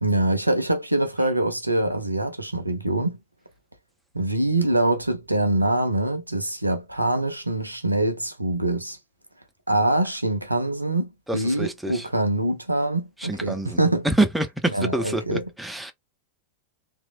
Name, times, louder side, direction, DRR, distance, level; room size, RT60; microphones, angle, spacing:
voice 1, 0.0-3.2 4.1-9.0 9.7-14.1 14.7-15.5, right 1 dB, 85° right, 0.5 m, -24 dB
voice 2, 11.6-12.0 13.3-13.8 14.0-15.9, right 2 dB, 5° right, 0.6 m, -26 dB
2.9 x 2.2 x 2.5 m
figure-of-eight pair, 90°, 0 cm